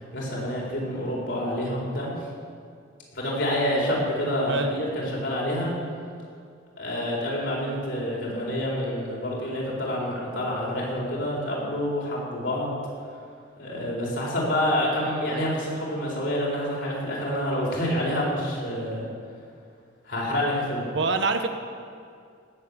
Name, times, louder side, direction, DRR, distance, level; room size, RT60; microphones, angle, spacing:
voice 1, 0.1-2.1 3.1-5.7 6.8-12.7 13.6-19.0 20.1-20.9, left 1 dB, 65° left, -4 dB, 4.6 m, -27 dB
voice 2, 20.9-21.5, right 3 dB, 60° right, 7 dB, 1.1 m, -25 dB
18.5 x 7.3 x 8.4 m, 2.3 s
head